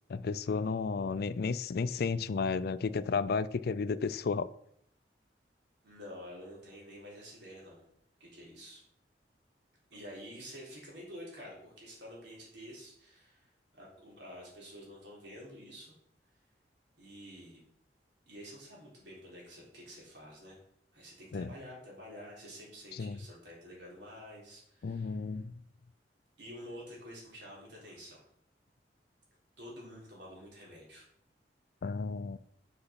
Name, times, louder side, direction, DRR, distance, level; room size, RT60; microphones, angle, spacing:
voice 1, 0.1-4.5 21.3-21.5 22.9-23.2 24.8-25.6 31.8-32.4, left 4 dB, 60° left, 16 dB, 0.4 m, -33 dB
voice 2, 5.8-7.8 8.2-8.8 9.9-15.9 17.0-17.6 18.3-20.6 20.9-25.3 26.4-28.2 29.6-31.1, equal, 75° right, -3 dB, 3.7 m, -49 dB
6.7 x 5.7 x 5.8 m, 0.71 s
head